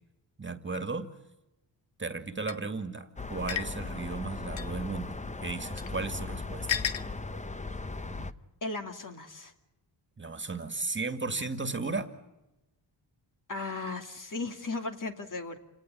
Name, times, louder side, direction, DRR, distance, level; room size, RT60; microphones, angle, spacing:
voice 1, 0.4-1.1 2.0-6.7 10.2-12.1, right 3 dB, 25° right, 8 dB, 2.2 m, -35 dB
sound 1, 2.5-2.6 3.5-3.7 4.6-4.7 5.8-5.9 6.7-7.0, left 10 dB, 80° left, 1.2 m, -31 dB
sound 2, 3.2-8.3, left 3 dB, 15° left, 0.9 m, -38 dB
voice 2, 8.6-9.5 13.5-15.6, left 3 dB, 45° left, 5 dB, 2.8 m, -36 dB
29.0 x 18.5 x 9.0 m, 0.99 s
wide cardioid pair, 110°, 45 cm